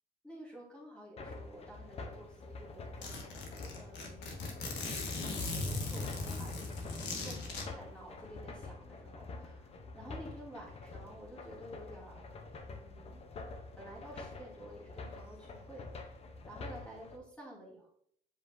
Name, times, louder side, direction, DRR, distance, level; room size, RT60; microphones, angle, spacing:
voice 1, 0.2-3.4 3.7-4.4 4.7-12.2 12.7-13.2 13.8-16.1 16.4-17.9, right 1 dB, 5° left, -6 dB, 2.4 m, -51 dB
sound 1, 1.2-17.2, left 3 dB, 35° left, 0.7 m, -47 dB
Zipper (clothing), 2.2-2.3 2.6-2.7 3.0-7.6, left 3 dB, 80° left, 1.4 m, -38 dB
8.0 x 5.1 x 2.6 m, 0.66 s
cardioid pair, 175°, 18 cm